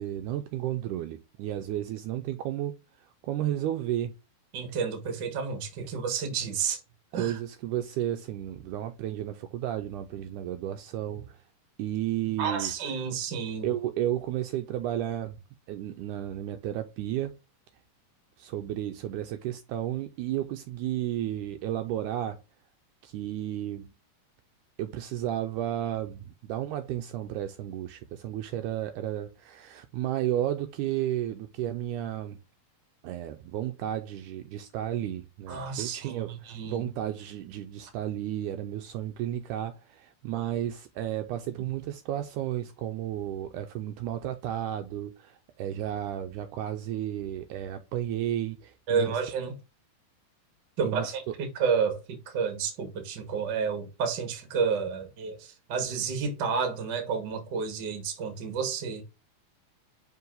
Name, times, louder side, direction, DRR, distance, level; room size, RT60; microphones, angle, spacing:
voice 1, 0.0-4.1 7.1-11.4 11.8-12.7 13.6-15.4 15.7-17.4 18.4-22.4 23.0-23.9 24.8-32.4 33.0-49.2 50.8-51.3, right 12 dB, 80° right, 1.9 m, -33 dB
voice 2, 4.5-6.8 7.1-7.3 12.4-13.7 35.5-36.8 48.9-49.5 50.8-51.2 51.5-59.0, right 6 dB, 50° right, 1.3 m, -30 dB
5.7 x 4.5 x 3.8 m
omnidirectional pair, 3.9 m